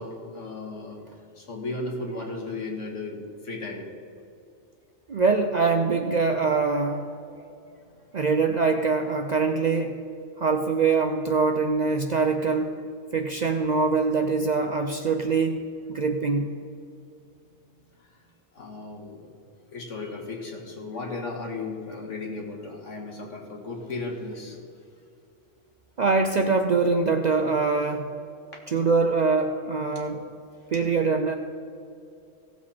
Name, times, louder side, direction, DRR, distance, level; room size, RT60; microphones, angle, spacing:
voice 1, 0.0-4.1 7.4-7.8 8.1-8.2 17.0-18.2 18.5-24.6 28.5-28.6 29.9-30.1, left 3 dB, 75° left, 0 dB, 2.1 m, -36 dB
voice 2, 5.1-7.0 8.1-10.0 10.4-12.8 13.1-16.5 26.0-28.1 28.7-30.2 30.7-31.3, right 4 dB, 50° right, 5 dB, 0.5 m, -23 dB
16.5 x 7.4 x 4.3 m, 2.5 s
omnidirectional pair, 1.3 m